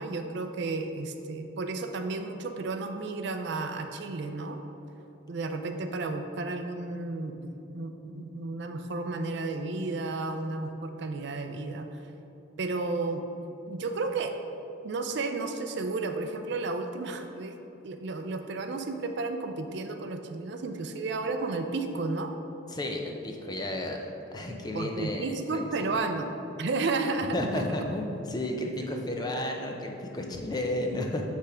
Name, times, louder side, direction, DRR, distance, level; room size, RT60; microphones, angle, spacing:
voice 1, 0.0-4.6 5.3-11.9 12.6-13.2 13.7-14.3 14.8-17.6 17.8-22.3 24.7-27.5 28.8-29.0, right 3 dB, 55° right, 6 dB, 0.4 m, -32 dB
voice 2, 22.7-26.1 27.3-31.2, left 1 dB, 20° left, 1 dB, 0.5 m, -33 dB
8.4 x 3.4 x 4.9 m, 2.9 s
head